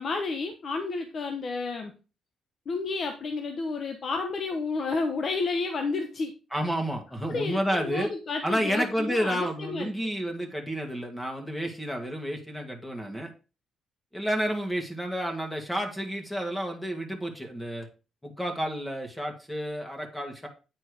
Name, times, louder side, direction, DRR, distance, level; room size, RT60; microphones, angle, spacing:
voice 1, 0.0-1.9 2.7-6.3 7.3-9.9, left 3 dB, 50° left, 5 dB, 1.0 m, -31 dB
voice 2, 6.5-8.1 8.4-13.3 14.1-17.9 18.2-20.5, equal, 10° left, 3 dB, 1.9 m, -30 dB
8.8 x 4.4 x 4.8 m, 0.32 s
cardioid pair, 90°, 0 cm